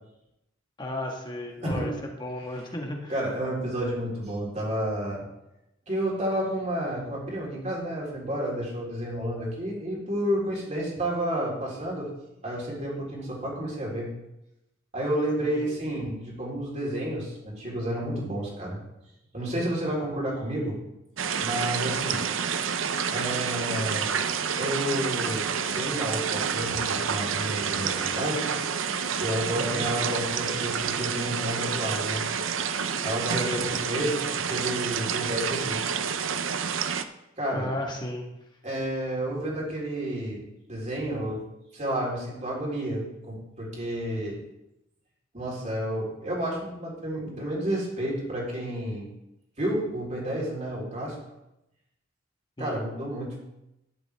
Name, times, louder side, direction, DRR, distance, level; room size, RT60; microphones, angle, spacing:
voice 1, 0.8-1.9 2.2-3.1 15.4-15.7 22.0-22.2 26.7-26.8 29.5-29.8 33.3-33.7 37.5-38.2 52.6-52.8, left 1 dB, 25° left, 1 dB, 1.6 m, -34 dB
voice 2, 1.6-2.0 3.1-5.3 5.9-12.1 12.4-14.1 14.9-18.8 19.3-20.8 21.4-22.3 23.1-24.1 24.6-25.5 25.7-28.5 29.2-32.2 33.0-34.1 34.5-36.0 37.4-37.7 38.6-40.4 40.7-41.4 41.7-44.4 45.3-49.1 49.6-51.2 52.6-53.4, right 1 dB, 35° right, -4 dB, 4.0 m, -30 dB
sound 1, 21.2-37.0, right 7 dB, 85° right, 0.7 m, -29 dB
12.0 x 10.5 x 3.6 m, 0.89 s
head